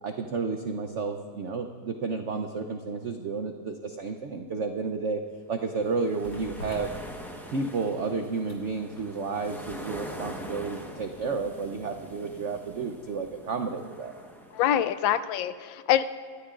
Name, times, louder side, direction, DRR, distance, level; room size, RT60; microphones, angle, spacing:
voice 1, 0.0-5.2 5.5-6.9 7.5-14.1, right 4 dB, 80° right, 5 dB, 0.6 m, -31 dB
sound 1, 5.0-12.9 13.3-13.4, left 1 dB, 60° left, 2.4 m, -48 dB
sound 2, 5.6-14.9, equal, ahead, 0.6 m, -44 dB
voice 2, 14.5-16.0, left 11 dB, 80° left, 13 dB, 1.3 m, -25 dB
23.0 x 13.0 x 2.4 m, 2.1 s
omnidirectional pair, 2.1 m